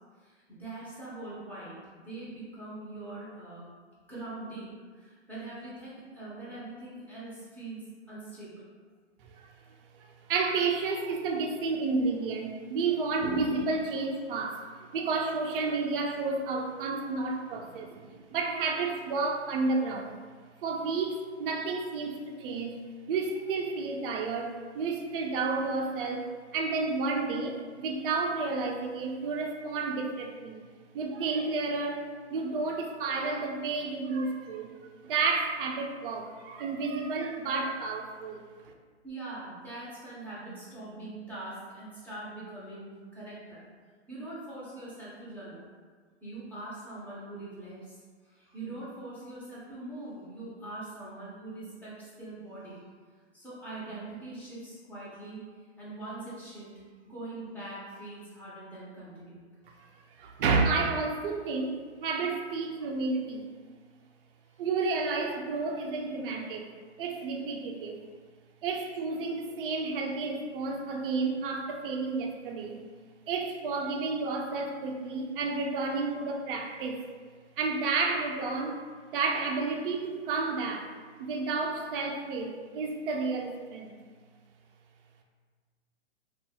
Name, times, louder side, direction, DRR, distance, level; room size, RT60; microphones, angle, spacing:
voice 1, 0.2-1.8 2.0-3.7 4.1-8.5 39.0-43.7 44.1-45.7 46.2-48.0 48.2-52.8 53.3-55.4 55.8-56.7 57.0-59.9 64.5-64.6, right 2 dB, 5° left, -9 dB, 0.6 m, -42 dB
voice 2, 10.0-14.6 14.9-20.2 20.6-22.8 23.1-26.3 26.5-30.7 30.9-34.7 35.0-38.7 60.2-63.5 64.6-66.7 67.0-68.0 68.6-72.8 73.3-77.0 77.6-78.8 79.1-80.9 81.2-84.0, right 4 dB, 50° right, 1 dB, 0.4 m, -31 dB
2.6 x 2.4 x 2.8 m, 1.5 s
hypercardioid pair, 135°, 35 cm